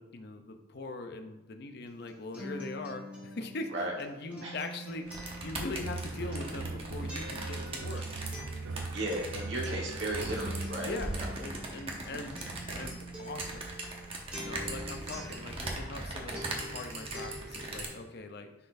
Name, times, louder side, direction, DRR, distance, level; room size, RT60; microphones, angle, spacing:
voice 1, 0.0-8.1 10.7-13.7 14.3-18.5, left 2 dB, 55° left, 6 dB, 0.6 m, -41 dB
Acoustic guitar, 1.9-16.1 16.3-17.8, equal, 5° right, 1.4 m, -45 dB
sound 1, 5.1-17.9, right 2 dB, 30° right, 1.0 m, -40 dB
sound 2, 5.8-11.6, right 3 dB, 85° right, 0.4 m, -40 dB
voice 2, 8.9-10.9 11.1-11.3 14.5-14.9, right 1 dB, 70° right, -2 dB, 1.5 m, -35 dB
9.8 x 4.2 x 2.6 m, 1.1 s
head